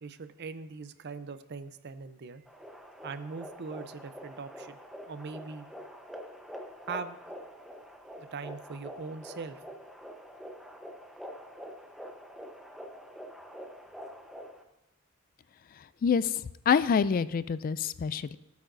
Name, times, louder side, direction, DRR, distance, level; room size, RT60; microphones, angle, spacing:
voice 1, 0.0-2.4 3.0-4.8 5.1-5.7 6.9-7.2 8.3-9.6, right 4 dB, 55° right, 12 dB, 0.5 m, -40 dB
sound 1, 2.5-14.6, equal, ahead, 0.9 m, -46 dB
voice 2, 16.7-18.4, left 6 dB, 45° left, 15 dB, 0.3 m, -26 dB
17.5 x 8.3 x 2.6 m, 0.92 s
head